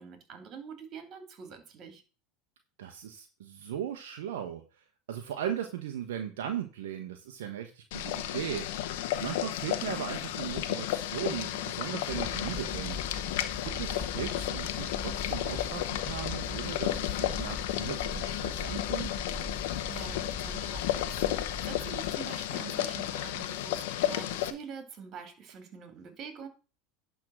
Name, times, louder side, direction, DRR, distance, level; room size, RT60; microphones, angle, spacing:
voice 1, 0.0-2.0 19.9-26.5, right 6 dB, 45° right, 8 dB, 2.5 m, -45 dB
voice 2, 2.8-4.6 5.1-8.9 9.2-13.0 13.6-19.2, right 10 dB, 75° right, 5 dB, 1.0 m, -37 dB
Boiling, 7.9-24.5, left 12 dB, 70° left, 1.0 m, -33 dB
sound 1, 12.1-22.1, left 3 dB, 5° left, 3.5 m, -41 dB
10.5 x 3.7 x 6.2 m, 0.35 s
hypercardioid pair, 90°, 0 cm